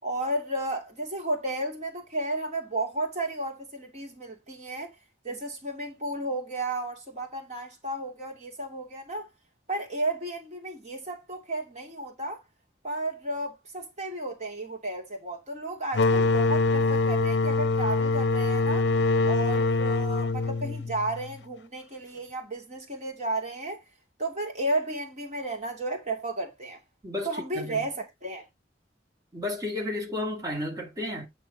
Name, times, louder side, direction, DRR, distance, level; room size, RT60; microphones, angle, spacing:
voice 1, 0.0-4.9 5.2-9.3 9.7-12.4 12.8-18.9 19.2-23.8 24.2-26.8 27.2-28.5, right 2 dB, 40° right, 2.8 m, -33 dB
sound 1, 15.9-21.4, left 3 dB, 70° left, 0.5 m, -24 dB
voice 2, 29.3-31.3, left 1 dB, 20° right, 2.8 m, -32 dB
9.1 x 3.8 x 5.1 m
head